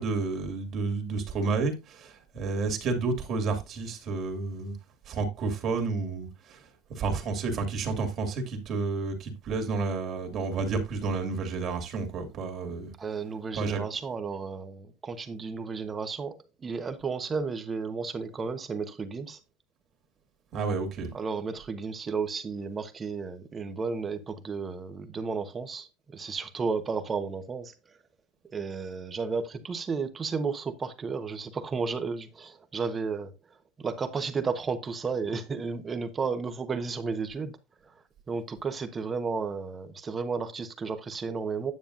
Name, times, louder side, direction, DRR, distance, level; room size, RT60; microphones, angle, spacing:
voice 1, 0.0-4.7 5.1-6.6 6.9-12.9 13.5-13.8 20.5-21.1, right 4 dB, 40° right, 2.3 m, -30 dB
voice 2, 13.0-16.3 16.6-19.4 21.1-27.7 28.5-33.3 33.8-37.6 37.8-37.9 38.3-41.7, right 5 dB, 20° right, 1.1 m, -33 dB
9.4 x 7.0 x 2.6 m
supercardioid pair, 125°, 0 cm